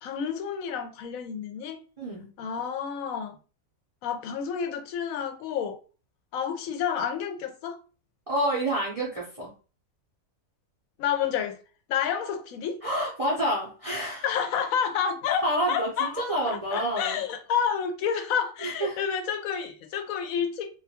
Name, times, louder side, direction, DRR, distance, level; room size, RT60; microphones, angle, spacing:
voice 1, 0.0-1.8 2.4-3.4 4.0-5.8 6.3-7.8 11.0-11.6 11.9-12.8 14.2-20.7, left 7 dB, 80° left, 1.0 m, -29 dB
voice 2, 2.0-2.3 8.3-9.5 12.8-14.3 15.4-17.2 18.6-19.0, right 1 dB, 40° right, 0.5 m, -28 dB
2.6 x 2.2 x 2.7 m
omnidirectional pair, 1.4 m